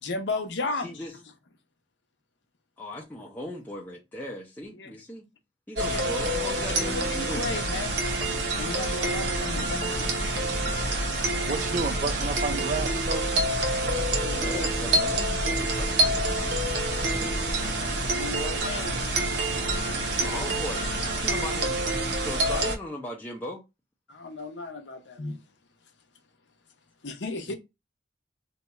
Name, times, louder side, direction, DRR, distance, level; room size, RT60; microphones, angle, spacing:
voice 1, 0.0-1.0 4.7-4.9 5.9-6.3 6.8-8.0 8.5-10.2 11.2-11.3 14.2-14.7 18.1-19.3 20.2-20.3 24.1-25.5 25.8-25.9 27.0-27.5, left 3 dB, 80° left, 0.7 m, -35 dB
voice 2, 2.8-5.2 5.7-7.5 14.4-16.5 16.9-17.4 20.2-21.8 22.2-23.6, left 1 dB, 10° left, 0.6 m, -38 dB
sound 1, 5.8-22.7, right 2 dB, 75° right, 0.8 m, -27 dB
sound 2, 8.9-18.0, equal, 15° right, 0.8 m, -37 dB
voice 3, 11.5-13.3, right 4 dB, 45° right, 0.4 m, -31 dB
2.8 x 2.3 x 4.1 m
head